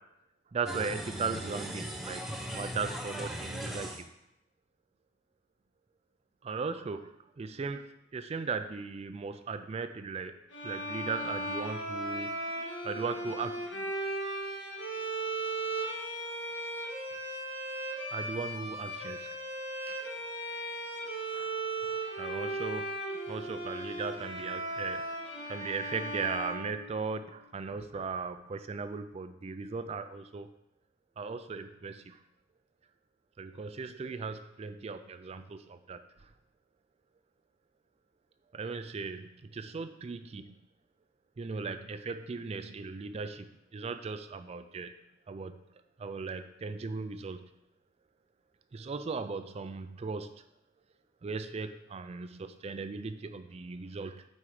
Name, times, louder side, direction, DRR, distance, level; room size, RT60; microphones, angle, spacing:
voice 1, 0.5-2.2 2.5-4.0 6.4-7.8 8.1-10.4 10.6-12.3 12.8-14.1 18.1-19.3 19.9-20.0 21.3-21.5 22.2-22.8 23.3-30.5 31.2-32.2 33.4-36.0 38.5-40.5 41.4-43.5 43.7-45.0 45.3-45.6 46.0-47.5 48.7-50.3 51.2-54.3, right 4 dB, 35° right, 10 dB, 0.3 m, -37 dB
sound 1, 0.7-4.0, right 1 dB, ahead, 0.8 m, -38 dB
sound 2, 10.5-27.3, right 1 dB, 70° left, 1.9 m, -37 dB
8.5 x 4.5 x 4.9 m, 0.85 s
head